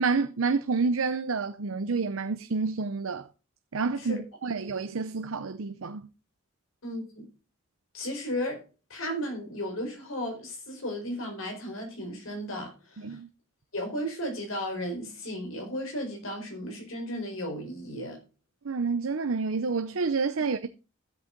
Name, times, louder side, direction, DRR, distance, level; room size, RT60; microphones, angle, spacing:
voice 1, 0.0-3.3 3.7-6.1 13.0-13.3 18.6-20.7, right 4 dB, 80° right, 0.6 m, -29 dB
voice 2, 6.8-7.2 7.9-8.6 8.9-13.2 13.7-18.2, equal, 80° left, 4.4 m, -34 dB
13.0 x 8.0 x 3.8 m
head